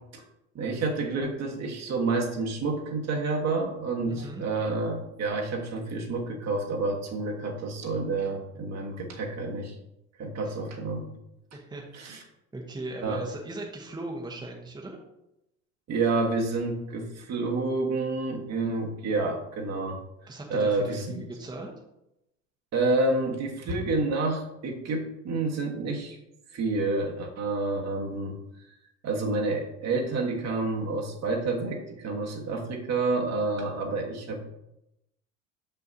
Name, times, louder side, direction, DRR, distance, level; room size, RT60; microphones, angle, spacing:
voice 1, 0.5-9.7 10.2-11.1 11.9-12.2 13.0-13.2 15.9-20.0 20.5-21.2 22.7-26.2 26.5-28.3 29.0-34.5, right 3 dB, 45° right, 1 dB, 1.4 m, -29 dB
voice 2, 4.1-4.4 10.5-10.6 11.5-15.0 20.3-21.7, right 2 dB, 10° right, -1 dB, 1.0 m, -39 dB
6.2 x 5.7 x 2.7 m, 0.86 s
hypercardioid pair, 80°, 38 cm